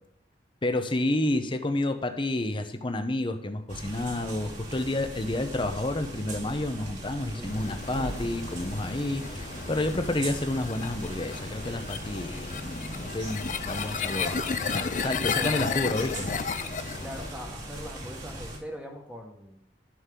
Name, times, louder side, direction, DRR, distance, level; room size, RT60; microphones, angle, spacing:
voice 1, 0.6-14.4 14.7-16.3, left 1 dB, 30° left, 7 dB, 0.9 m, -30 dB
sound 1, 3.7-18.6, right 1 dB, 45° right, 2.6 m, -40 dB
voice 2, 7.4-7.8 15.3-15.9 17.0-19.6, equal, 5° right, 1 dB, 1.6 m, -41 dB
sound 2, 7.5-17.3, left 5 dB, 45° left, 0.5 m, -33 dB
11.5 x 6.4 x 3.8 m, 0.82 s
head